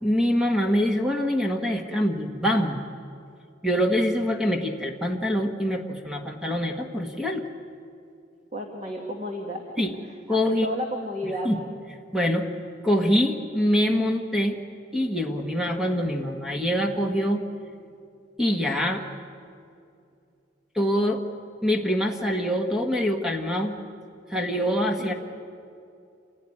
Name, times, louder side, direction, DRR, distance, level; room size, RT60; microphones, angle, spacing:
voice 1, 0.0-2.8 3.6-7.4 9.8-9.9 10.3-10.7 11.4-11.6 12.1-12.5 12.8-14.6 14.9-17.4 18.4-19.0 20.7-21.2 21.6-23.8 24.3-25.1, equal, 5° right, 2 dB, 1.5 m, -24 dB
voice 2, 8.5-9.7 10.0-11.5 25.0-25.1, equal, 35° right, 1 dB, 2.0 m, -32 dB
27.5 x 16.5 x 10.0 m, 2.5 s
head